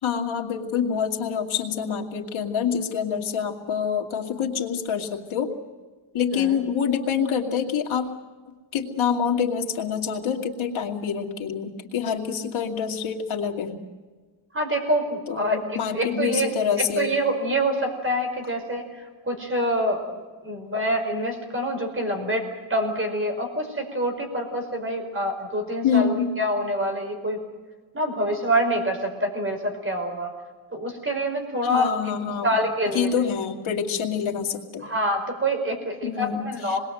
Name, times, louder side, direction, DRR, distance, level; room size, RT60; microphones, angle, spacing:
voice 1, 0.0-5.5 6.1-8.1 8.7-13.8 15.3-17.1 25.8-26.3 31.7-32.5 32.9-34.9 36.0-36.8, left 7 dB, 85° left, 3 dB, 2.6 m, -26 dB
voice 2, 14.5-16.5 17.0-18.9 19.2-20.0 20.4-27.4 27.9-30.3 30.7-31.9 32.4-33.1 34.8-36.8, right 1 dB, 25° right, 3 dB, 5.2 m, -26 dB
28.0 x 21.0 x 7.8 m, 1.3 s
wide cardioid pair, 140°, 47 cm